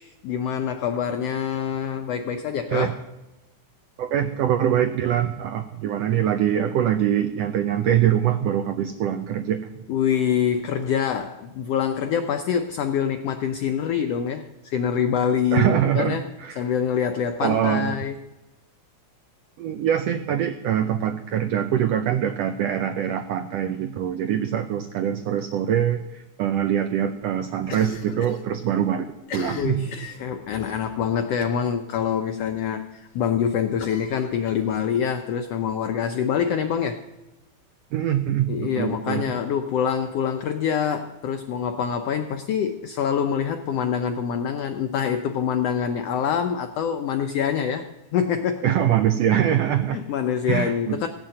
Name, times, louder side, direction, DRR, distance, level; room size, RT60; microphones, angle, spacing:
voice 1, 0.0-2.9 9.9-16.3 16.6-18.2 29.6-37.0 38.5-47.9 48.1-48.7 49.9-51.1, left 8 dB, 85° left, 7 dB, 1.4 m, -25 dB
voice 2, 4.0-9.8 15.5-16.6 17.4-17.9 19.6-29.1 29.3-29.9 37.9-39.2 48.6-50.0 50.5-51.1, right 10 dB, 85° right, 9 dB, 1.4 m, -23 dB
Cough, 27.6-28.4 28.7-28.8 29.2-30.7 31.4-31.7 32.0-32.1 32.5-32.6 33.8-35.0, left 4 dB, 60° left, 1.1 m, -38 dB
16.0 x 7.2 x 7.6 m, 1.0 s
omnidirectional pair, 3.5 m